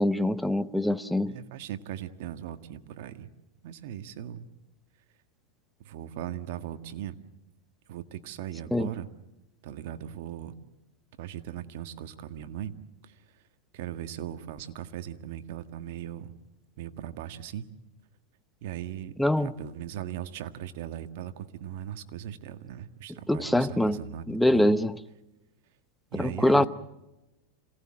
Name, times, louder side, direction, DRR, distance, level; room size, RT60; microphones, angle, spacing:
voice 1, 0.0-1.4 8.7-8.9 19.2-19.5 23.3-24.0 24.3-25.0 26.2-26.7, left 1 dB, 5° left, 0.9 m, -24 dB
voice 2, 1.3-3.3 3.6-4.5 5.8-7.2 7.9-9.1 9.6-10.5 11.2-12.7 13.0-13.2 13.7-16.3 16.8-17.6 18.6-24.7 26.1-26.7, right 11 dB, 65° right, 1.7 m, -39 dB
27.0 x 18.0 x 7.6 m
supercardioid pair, 125°, 0 cm